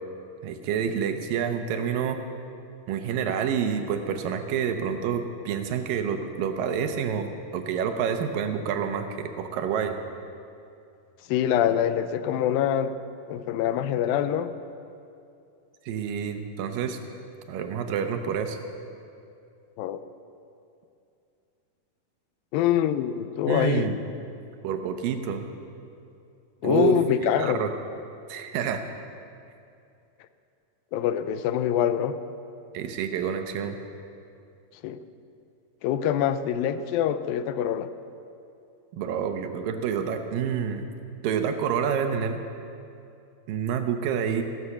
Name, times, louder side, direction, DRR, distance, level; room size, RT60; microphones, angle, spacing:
voice 1, 0.4-2.2 2.9-10.0 15.9-17.0 17.5-18.6 23.5-24.0 24.6-25.5 26.6-27.0 27.4-27.7 28.3-28.9 32.7-33.8 38.9-40.8 41.2-42.4 43.5-44.4, right 7 dB, 75° right, 7 dB, 2.5 m, -28 dB
voice 2, 11.3-13.0 13.3-14.5 19.8-20.0 22.5-23.9 26.6-27.7 30.9-32.2 34.8-35.0 35.8-37.9, left 10 dB, 85° left, 11 dB, 2.4 m, -25 dB
15.5 x 11.0 x 7.1 m, 2.6 s
omnidirectional pair, 4.1 m